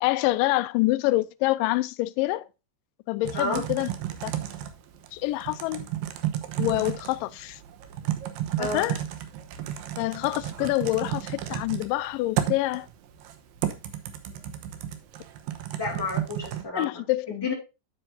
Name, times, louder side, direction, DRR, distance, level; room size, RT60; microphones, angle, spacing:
voice 1, 0.0-2.4 3.1-3.9 4.2-4.3 5.1-5.9 6.6-7.6 8.6-9.0 10.0-12.9 16.8-17.5, left 18 dB, 80° left, 2.1 m, -26 dB
Typing, 3.2-16.6, right 11 dB, 80° right, 2.7 m, -33 dB
voice 2, 8.6-8.9 15.8-17.5, left 2 dB, 5° left, 2.7 m, -31 dB
8.9 x 8.6 x 2.6 m
omnidirectional pair, 4.2 m